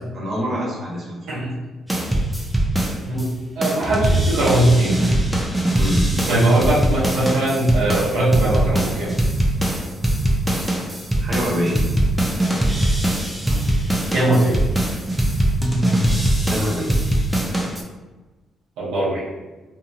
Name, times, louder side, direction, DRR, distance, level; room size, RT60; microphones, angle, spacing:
voice 1, 0.1-1.4 5.7-6.0 11.2-11.8 13.5-13.6 14.1-14.3 16.5-16.9, equal, 45° right, -5 dB, 1.1 m, -25 dB
sound 1, 1.9-3.3 3.6-17.8, right 1 dB, 10° right, 0.5 m, -21 dB
voice 2, 3.1-5.0 6.3-9.1 14.1-14.6 18.8-19.3, right 1 dB, 90° right, -8 dB, 0.9 m, -20 dB
2.8 x 2.7 x 2.4 m, 1.2 s
cardioid pair, 80°, 0 cm